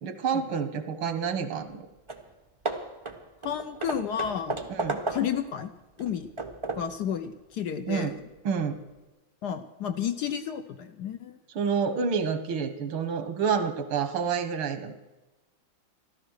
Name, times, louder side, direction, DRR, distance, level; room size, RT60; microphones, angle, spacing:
voice 1, 0.0-1.9 4.7-5.0 7.9-8.1 8.4-8.8 11.6-14.9, right 6 dB, 85° right, 10 dB, 2.1 m, -28 dB
Hammer / Wood, 1.7-1.8 2.1-2.3 2.6-5.5 6.0-7.0, right 2 dB, 40° right, 0.4 m, -34 dB
voice 2, 3.4-4.7 5.1-5.7 6.0-6.3 6.8-8.1 9.4-11.4, left 8 dB, 65° left, 9 dB, 1.1 m, -31 dB
14.0 x 12.5 x 6.4 m, 1.1 s
omnidirectional pair, 2.2 m